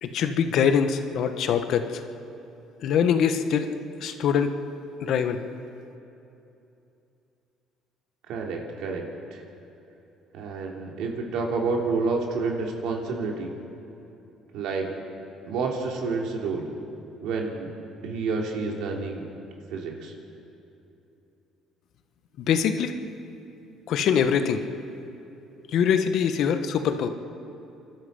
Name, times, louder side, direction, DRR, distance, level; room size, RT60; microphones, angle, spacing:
voice 1, 0.0-2.0 2.8-3.7 4.0-4.6 5.0-5.4 22.4-22.9 23.9-24.6 25.7-27.1, left 7 dB, 65° left, 8 dB, 1.3 m, -23 dB
voice 2, 8.3-9.0 9.3-9.4 10.3-13.5 14.5-14.9 15.4-16.7 17.2-17.7 18.0-19.2 19.7-20.1, right 4 dB, 75° right, 0 dB, 3.2 m, -29 dB
27.5 x 12.5 x 7.8 m, 2.9 s
cardioid pair, 95°, 0 cm